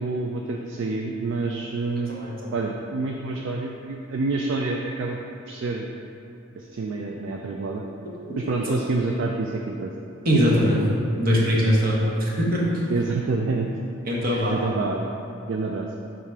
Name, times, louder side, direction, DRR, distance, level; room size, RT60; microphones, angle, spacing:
voice 1, 0.0-2.1 2.5-5.2 5.5-5.8 6.6-7.8 8.4-9.9 12.9-13.7 14.3-15.1 15.5-15.9, right 3 dB, 60° right, 0 dB, 0.3 m, -27 dB
voice 2, 2.2-2.5 10.2-10.8 11.2-12.9 14.1-14.5, equal, 45° right, -4 dB, 1.0 m, -21 dB
5.7 x 3.7 x 4.6 m, 2.8 s
head